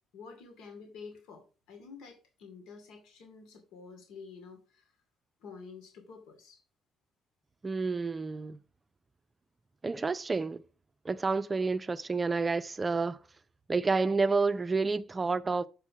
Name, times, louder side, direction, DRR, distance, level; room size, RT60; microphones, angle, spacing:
voice 1, 0.1-5.0 5.4-6.6, left 5 dB, 85° left, 2.5 m, -49 dB
voice 2, 7.6-8.6 9.8-10.6 11.0-13.2 13.7-15.7, right 4 dB, 25° right, 0.5 m, -29 dB
7.4 x 5.8 x 4.7 m
cardioid pair, 105°, 0 cm